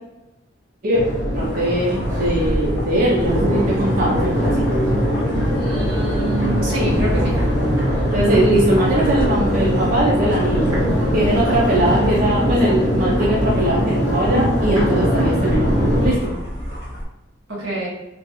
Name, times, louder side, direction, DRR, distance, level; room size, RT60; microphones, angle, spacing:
Crowd, 0.9-16.1, equal, 20° right, 1.2 m, -21 dB
sound 1, 1.3-17.0, equal, 50° left, 1.1 m, -32 dB
voice 1, 1.3-4.7 8.1-10.8 11.1-15.7 16.0-16.3, right 1 dB, 45° right, -4 dB, 0.6 m, -20 dB
voice 2, 5.5-7.3 17.6-17.9, right 2 dB, 85° right, -5 dB, 1.4 m, -26 dB
3.4 x 2.4 x 2.9 m, 1.0 s
head